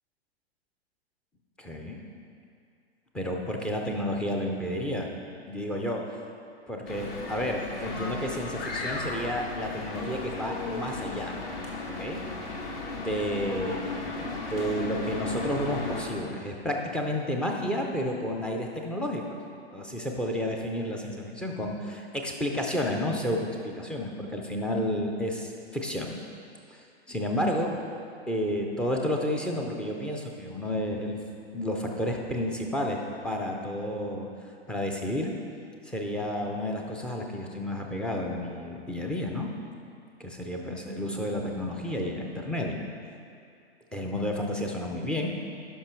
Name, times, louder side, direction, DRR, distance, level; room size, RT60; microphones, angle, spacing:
voice 1, 1.6-2.1 3.1-5.1 5.5-6.0 6.7-11.3 11.9-12.2 13.0-13.9 14.5-19.2 19.7-26.2 26.7-27.7 28.3-31.2 31.5-34.3 34.7-35.3 35.9-39.5 40.2-42.8 43.9-45.3, left 1 dB, 5° left, 1 dB, 0.3 m, -31 dB
sound 1, 6.9-16.0, left 2 dB, 65° left, 1.8 m, -35 dB
12.0 x 5.4 x 4.4 m, 2.4 s
hypercardioid pair, 115°, 32 cm